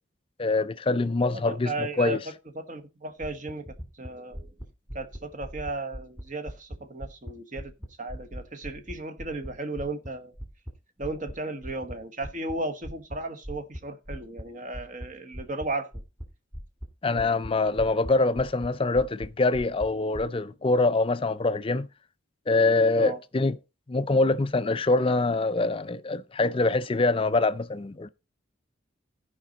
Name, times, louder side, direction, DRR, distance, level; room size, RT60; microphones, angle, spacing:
voice 1, 0.4-2.2 17.0-21.9 22.5-23.6 23.9-28.1, left 3 dB, 25° left, 0.4 m, -24 dB
voice 2, 1.3-2.2 2.5-3.7 4.0-4.5 4.9-7.7 8.0-10.3 11.0-15.9 22.9-23.2, right 2 dB, 40° right, 1.1 m, -35 dB
sound 1, 3.2-7.3 7.6-10.7 11.0-11.3 11.6-11.9 12.2-12.6 12.8-13.2 13.4-13.8 14.0-14.4 14.7-15.1 15.3-15.7 15.9-16.3 16.5-16.9 17.2-18.1 18.4-18.7 18.9-19.3 19.5-20.2, equal, 15° right, 2.6 m, -39 dB
15.0 x 5.2 x 3.9 m
head